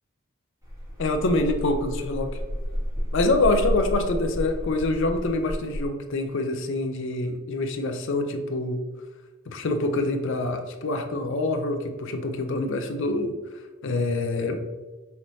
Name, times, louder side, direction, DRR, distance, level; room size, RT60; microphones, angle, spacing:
sound 1, 0.6-5.9, equal, 15° right, 1.4 m, -31 dB
voice 1, 1.0-2.3 3.1-8.8 9.5-13.3 13.8-14.6, left 2 dB, 60° left, 6 dB, 0.5 m, -25 dB
5.7 x 3.1 x 2.7 m, 1.2 s
head